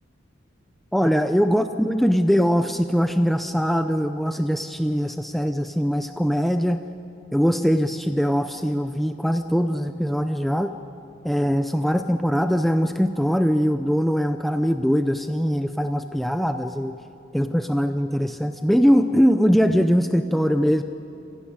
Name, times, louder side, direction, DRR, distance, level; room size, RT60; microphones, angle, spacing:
voice 1, 0.9-6.8 7.3-10.7 11.2-16.9 17.3-20.8, equal, ahead, 8 dB, 0.5 m, -21 dB
26.0 x 15.5 x 9.4 m, 2.7 s
head